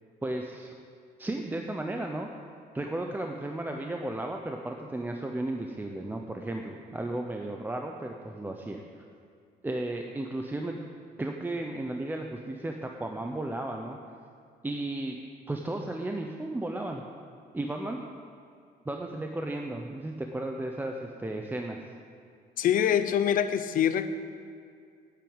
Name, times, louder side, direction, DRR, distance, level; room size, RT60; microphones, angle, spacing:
voice 1, 0.2-0.7 1.2-2.3 2.7-8.8 9.6-10.8 11.2-14.0 14.6-15.2 15.5-17.0 17.5-18.0 18.8-21.8, right 1 dB, 10° right, 2 dB, 0.8 m, -34 dB
voice 2, 22.6-24.1, left 9 dB, 55° left, 10 dB, 0.7 m, -24 dB
9.3 x 8.4 x 8.9 m, 2.3 s
cardioid pair, 110°, 17 cm